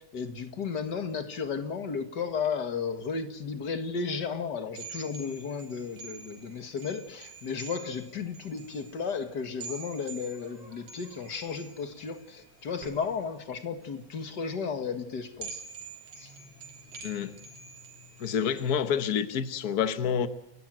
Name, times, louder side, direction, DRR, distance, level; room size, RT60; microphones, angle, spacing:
voice 1, 0.0-15.6 16.2-16.3, left 5 dB, 40° left, 2.0 m, -34 dB
sound 1, 4.7-18.7, right 4 dB, 55° right, 4.4 m, -47 dB
voice 2, 17.0-17.4 18.2-20.3, left 7 dB, 85° left, 0.8 m, -28 dB
29.5 x 14.0 x 9.1 m
omnidirectional pair, 3.4 m